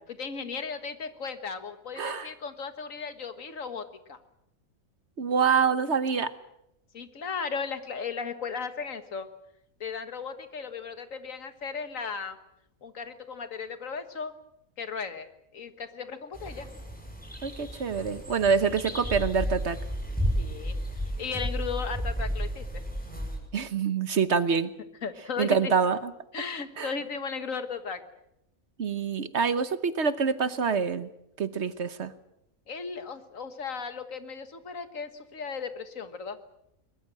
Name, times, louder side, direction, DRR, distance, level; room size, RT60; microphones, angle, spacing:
voice 1, 0.2-4.2 6.9-9.3 9.8-12.4 12.8-14.3 14.8-16.7 20.4-22.8 25.0-25.7 26.3-28.0 32.7-36.4, left 5 dB, 70° left, 10 dB, 1.9 m, -36 dB
voice 2, 2.0-2.3 5.2-6.3 17.4-19.8 23.5-24.7 25.4-26.1 26.8-26.9 28.8-31.1 31.4-32.1, right 6 dB, 55° right, 12 dB, 1.3 m, -26 dB
sound 1, 16.3-23.4, equal, 5° left, 6.1 m, -33 dB
23.0 x 20.5 x 7.6 m, 0.82 s
omnidirectional pair, 1.4 m